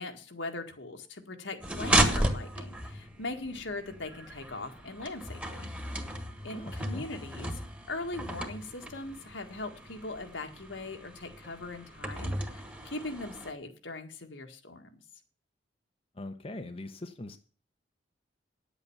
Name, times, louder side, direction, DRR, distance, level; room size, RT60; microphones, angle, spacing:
voice 1, 0.0-5.7 6.4-7.5 7.9-14.9, left 2 dB, 80° left, 5 dB, 1.9 m, -40 dB
sound 1, 1.6-13.5, right 1 dB, 5° right, 1.5 m, -34 dB
voice 2, 6.5-7.0 16.1-17.4, left 2 dB, 30° left, 7 dB, 0.8 m, -41 dB
10.0 x 8.1 x 7.1 m, 0.39 s
head